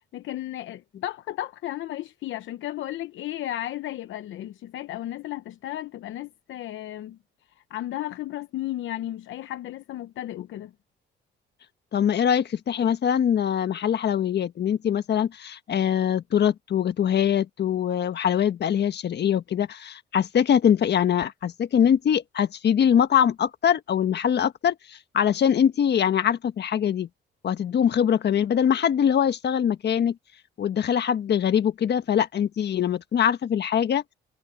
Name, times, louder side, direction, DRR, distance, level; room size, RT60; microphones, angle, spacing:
voice 1, 0.1-7.2 7.6-10.7, left 13 dB, 80° left, 0.9 m, -34 dB
voice 2, 11.9-27.1 27.4-30.1 30.6-34.0, left 9 dB, 60° left, 1.5 m, -23 dB
cardioid pair, 90°, 20 cm